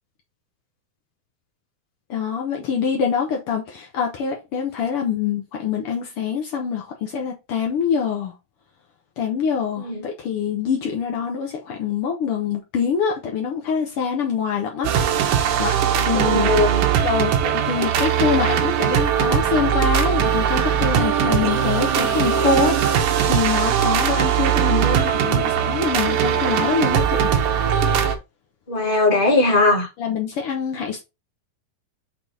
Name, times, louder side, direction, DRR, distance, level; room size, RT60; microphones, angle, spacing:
voice 1, 2.1-8.3 9.2-14.9 15.6-16.5 17.0-22.9 23.3-27.3 29.3-29.4 30.0-31.0, left 6 dB, 85° left, 1.2 m, -25 dB
sound 1, 14.8-28.2, right 9 dB, 70° right, 2.1 m, -20 dB
voice 2, 16.2-16.9 28.7-29.9, left 2 dB, 20° left, 1.6 m, -19 dB
6.6 x 3.5 x 4.1 m
omnidirectional pair, 3.9 m